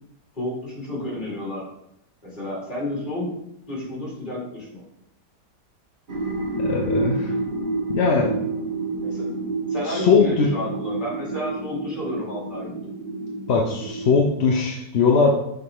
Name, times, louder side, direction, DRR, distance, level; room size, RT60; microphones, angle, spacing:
voice 1, 0.3-1.6 2.2-3.2 3.7-4.8 9.0-9.2 9.7-12.8, left 1 dB, 30° left, -6 dB, 3.1 m, -31 dB
sound 1, 6.1-14.2, right 3 dB, 35° right, 1.0 m, -29 dB
voice 2, 6.5-7.3 7.9-8.3 9.9-10.5 13.5-15.3, left 5 dB, 55° left, 0 dB, 0.8 m, -20 dB
6.8 x 4.9 x 3.7 m, 0.77 s
omnidirectional pair, 1.8 m